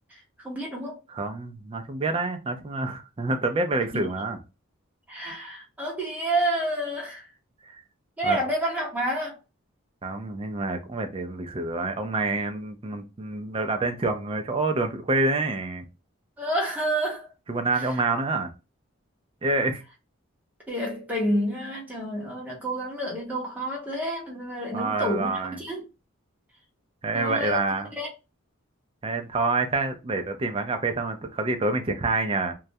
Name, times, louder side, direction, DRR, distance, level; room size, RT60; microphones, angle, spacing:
voice 1, 0.1-1.0 5.1-7.3 8.2-9.4 16.4-17.3 17.8-17.9 20.7-25.8 27.1-27.6 28.0-28.1, right 1 dB, 5° right, 0.8 m, -29 dB
voice 2, 1.1-4.4 7.6-7.8 8.2-8.4 10.0-15.9 17.5-18.5 19.4-19.8 24.7-25.6 27.0-27.9 29.0-32.5, right 3 dB, 25° right, 0.3 m, -27 dB
2.3 x 2.0 x 2.6 m
head